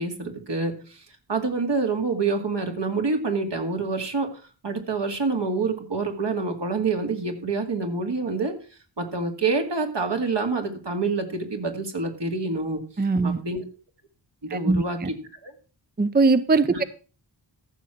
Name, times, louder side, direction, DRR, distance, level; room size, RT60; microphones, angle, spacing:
voice 1, 0.0-8.5 9.0-12.8 13.2-13.6 14.5-15.1 15.4-15.5 16.7-16.8, right 3 dB, 65° right, 2.4 m, -27 dB
voice 2, 13.0-13.4 14.5-15.1 16.0-16.8, right 3 dB, 20° right, 0.6 m, -21 dB
14.5 x 6.4 x 5.8 m
wide cardioid pair, 65°, 44 cm